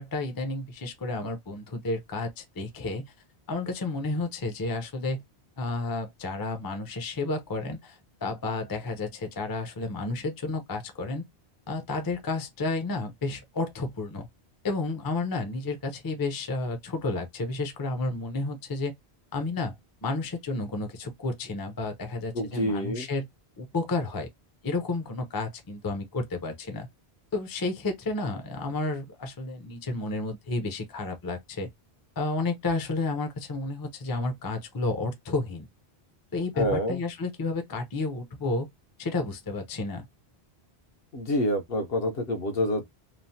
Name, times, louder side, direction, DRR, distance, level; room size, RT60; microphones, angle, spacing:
voice 1, 0.0-3.0 3.5-5.2 5.6-11.2 11.7-14.3 14.6-18.9 19.3-19.7 20.0-23.3 23.6-24.3 24.6-26.9 27.3-31.7 32.2-35.7 36.3-38.7 39.0-40.0, left 3 dB, 30° left, 0.5 m, -31 dB
voice 2, 22.3-23.1 36.6-37.0 41.1-42.9, left 1 dB, 70° left, 0.9 m, -27 dB
3.1 x 2.0 x 2.7 m
omnidirectional pair, 1.1 m